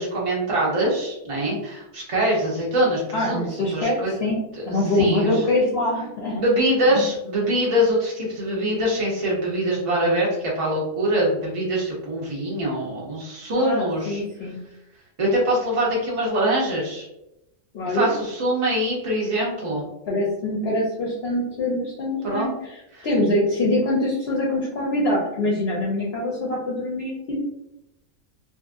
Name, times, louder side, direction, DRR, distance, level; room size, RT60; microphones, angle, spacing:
voice 1, 0.0-3.4 3.7-4.1 4.5-4.6 4.9-5.4 6.3-14.2 15.2-17.1 17.9-19.9 22.2-22.5 23.0-23.1, right 1 dB, 50° right, -5 dB, 0.4 m, -23 dB
voice 2, 3.1-6.4 13.6-14.6 17.7-18.1 20.1-27.4, left 1 dB, 60° left, -4 dB, 0.7 m, -24 dB
2.8 x 2.4 x 2.4 m, 0.88 s
omnidirectional pair, 1.5 m